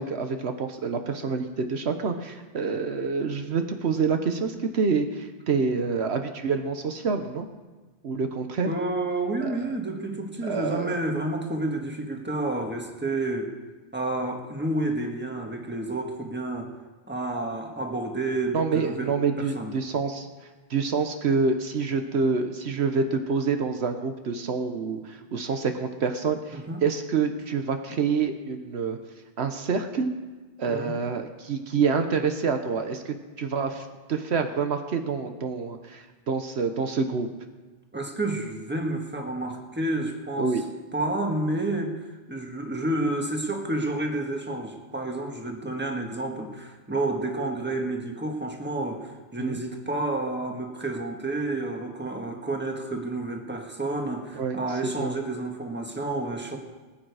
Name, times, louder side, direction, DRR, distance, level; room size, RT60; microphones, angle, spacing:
voice 1, 0.0-7.5 8.0-8.7 9.4-9.7 10.4-11.0 18.5-20.3 20.7-29.0 29.4-30.1 30.6-37.3 40.4-40.6 49.4-49.6 54.3-54.6 55.0-55.2, right 5 dB, 75° right, 6 dB, 1.2 m, -27 dB
voice 2, 8.6-13.5 13.9-16.7 17.1-19.7 26.5-26.8 30.7-31.0 37.9-40.5 40.9-41.9 42.3-56.6, right 2 dB, 10° right, 2 dB, 1.5 m, -30 dB
20.0 x 8.9 x 4.8 m, 1.3 s
omnidirectional pair, 1.1 m